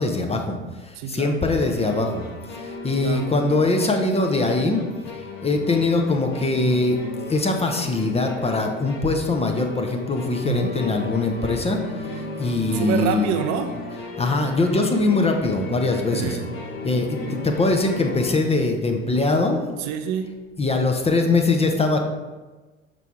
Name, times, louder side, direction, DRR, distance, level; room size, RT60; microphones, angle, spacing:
voice 1, 0.0-4.8 5.1-13.3 14.2-16.4 16.8-19.7 20.6-22.0, left 2 dB, 15° left, 3 dB, 0.7 m, -22 dB
voice 2, 0.9-1.4 3.0-3.3 10.4-10.7 12.7-13.7 16.1-16.5 19.8-20.3, right 8 dB, 50° right, 7 dB, 0.6 m, -27 dB
sound 1, 1.5-18.4, left 3 dB, 55° left, 1.1 m, -36 dB
5.9 x 4.5 x 3.5 m, 1.2 s
figure-of-eight pair, 65°, 37 cm